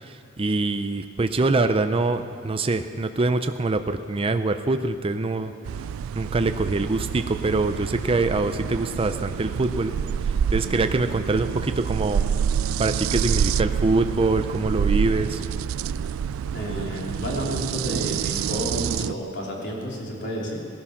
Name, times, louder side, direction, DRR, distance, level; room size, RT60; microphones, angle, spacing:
voice 1, 0.0-5.5 6.1-9.9 10.2-12.2 12.8-15.4, right 3 dB, 30° right, 8 dB, 0.5 m, -24 dB
sound 1, 5.7-19.1, right 8 dB, 85° right, 0.3 m, -27 dB
voice 2, 16.5-20.6, equal, 60° left, -3 dB, 3.2 m, -31 dB
18.5 x 11.5 x 5.9 m, 2.3 s
head